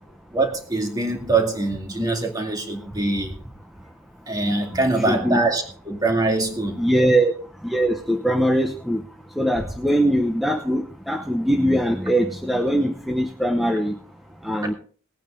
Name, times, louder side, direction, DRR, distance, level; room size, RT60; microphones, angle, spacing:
voice 1, 0.3-3.3 4.3-6.8, right 2 dB, 20° right, 2 dB, 2.2 m, -23 dB
voice 2, 5.1-5.5 6.8-7.3 7.6-9.0 9.4-14.0 14.4-14.7, right 1 dB, ahead, 4 dB, 0.9 m, -21 dB
20.0 x 9.1 x 3.7 m, 0.42 s
head